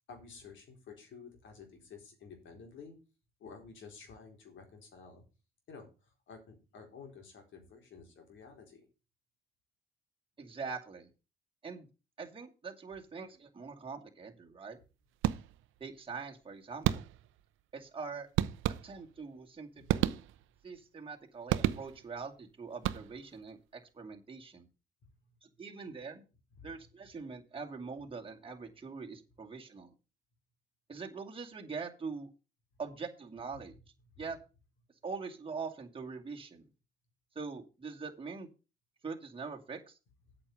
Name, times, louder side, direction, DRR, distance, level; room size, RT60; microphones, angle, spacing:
voice 1, 0.1-2.9 3.4-5.3 5.7-5.9 6.3-8.8 19.8-20.4 25.2-25.4 26.6-27.1 34.2-34.3, left 5 dB, 75° left, 3 dB, 4.1 m, -52 dB
voice 2, 10.4-11.1 11.6-11.9 12.2-14.8 15.8-17.0 17.7-18.3 18.8-19.8 20.6-24.7 25.4-26.2 26.6-29.9 30.9-32.3 32.8-33.7 34.2-34.4 35.0-36.7 37.4-38.5 39.0-40.0, right 5 dB, 25° right, 1 dB, 2.3 m, -43 dB
sound 1, 15.2-15.8 16.8-17.4 18.4-19.2 19.9-20.7 21.5-22.2 22.7-23.4, right 13 dB, 90° right, 0.7 m, -32 dB
8.6 x 6.6 x 6.5 m, 0.32 s
cardioid pair, 90°, 20 cm